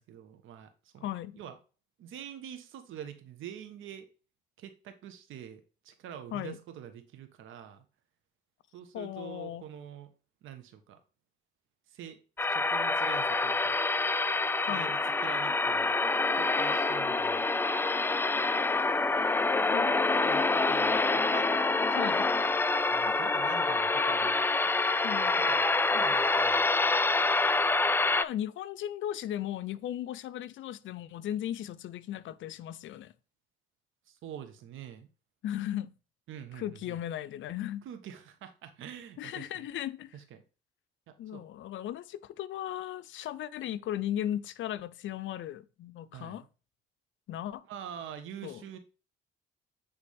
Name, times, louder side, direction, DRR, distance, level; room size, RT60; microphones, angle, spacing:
voice 1, 0.0-1.1 1.4-1.6 2.0-4.1 4.6-7.8 8.7-10.1 10.4-11.0 11.9-13.8 14.7-15.9 16.3-17.5 20.2-21.5 22.0-22.3 22.9-24.4 25.3-25.7 26.0-26.7 34.1-35.1 36.3-37.0 37.8-39.7 40.1-40.4 41.1-41.4 46.1-46.5 47.7-48.8, right 9 dB, 80° right, 1.3 m, -45 dB
voice 2, 1.0-1.4 6.3-6.6 8.9-9.6 14.7-14.9 19.6-20.6 21.9-22.3 24.2-24.3 25.0-25.4 25.9-26.2 28.0-33.1 35.4-35.9 36.5-37.9 39.2-40.1 41.2-46.4 47.3-47.6 48.4-48.6, left 11 dB, 75° left, 0.6 m, -37 dB
sound 1, 12.4-28.2, left 3 dB, 10° left, 0.3 m, -27 dB
8.9 x 3.5 x 3.4 m
cardioid pair, 90°, 20 cm